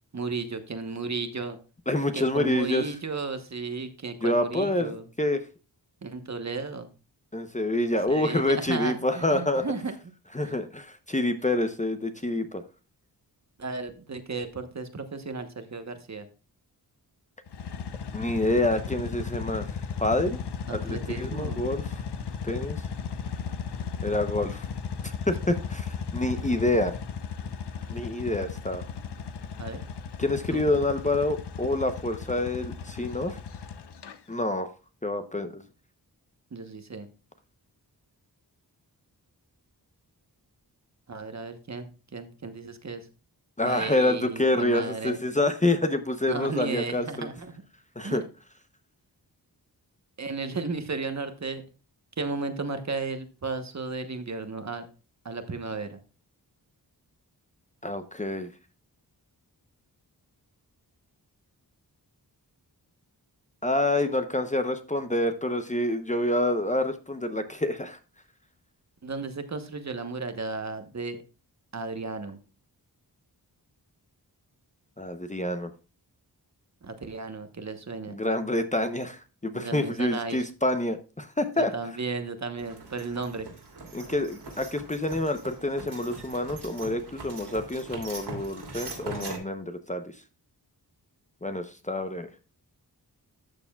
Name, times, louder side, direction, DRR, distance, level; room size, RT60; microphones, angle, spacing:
voice 1, 0.1-1.6 2.1-5.0 6.0-6.9 8.1-9.9 10.4-10.5 13.6-16.3 20.7-21.6 26.3-26.7 29.6-29.8 30.5-30.6 36.5-37.1 41.1-43.1 43.6-45.2 46.3-47.5 48.0-48.2 50.2-51.6 52.2-54.9 55.2-56.0 69.0-71.2 71.7-72.4 76.8-78.2 79.5-80.4 81.6-83.5, right 4 dB, 45° right, 8 dB, 1.1 m, -34 dB
voice 2, 1.9-2.9 4.2-5.4 7.3-9.7 10.3-12.6 18.1-19.7 20.0-20.4 20.7-22.0 22.4-22.8 24.0-24.7 25.0-26.9 27.9-28.8 30.2-33.4 34.3-34.7 35.0-35.6 43.6-47.3 48.0-48.2 57.8-58.5 63.6-68.0 75.0-75.7 78.1-81.7 83.9-90.0 91.4-92.3, left 1 dB, 20° left, 8 dB, 0.8 m, -27 dB
sound 1, 17.5-34.2, left 6 dB, 80° left, 0.9 m, -36 dB
sound 2, 82.6-89.4, right 3 dB, 80° right, 2.9 m, -42 dB
12.5 x 6.8 x 2.3 m, 0.33 s
wide cardioid pair, 105°, 40 cm